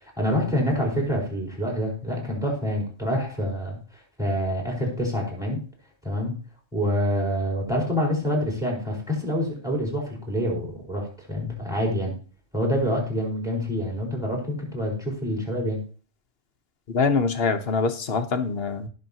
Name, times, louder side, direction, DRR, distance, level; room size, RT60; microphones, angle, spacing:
voice 1, 0.0-5.6 6.0-6.4 6.7-12.1 12.5-15.8, equal, 5° right, -1 dB, 4.6 m, -27 dB
voice 2, 16.9-18.9, left 4 dB, 55° left, 9 dB, 1.2 m, -24 dB
18.5 x 6.4 x 2.9 m, 0.39 s
omnidirectional pair, 1.3 m